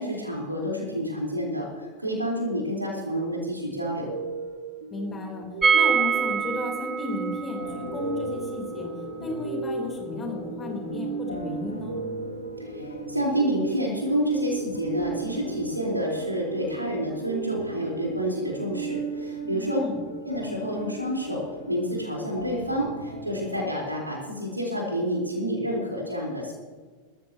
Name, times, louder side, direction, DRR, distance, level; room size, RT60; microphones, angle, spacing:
voice 1, 0.0-4.1 12.6-19.8 20.2-26.5, equal, 85° right, -2 dB, 4.5 m, -29 dB
sound 1, 4.1-20.4, right 6 dB, 65° right, 2.0 m, -37 dB
voice 2, 4.9-5.5 5.7-8.9 9.2-12.0 19.7-20.0, left 3 dB, 20° left, 0 dB, 4.1 m, -34 dB
sound 2, 5.6-11.4 11.6-11.7 12.0-12.1, right 6 dB, 15° right, 0.9 m, -27 dB
sound 3, 6.3-23.6, left 1 dB, 75° left, 2.1 m, -40 dB
22.5 x 14.0 x 3.1 m, 1.5 s
figure-of-eight pair, 90°, 0 cm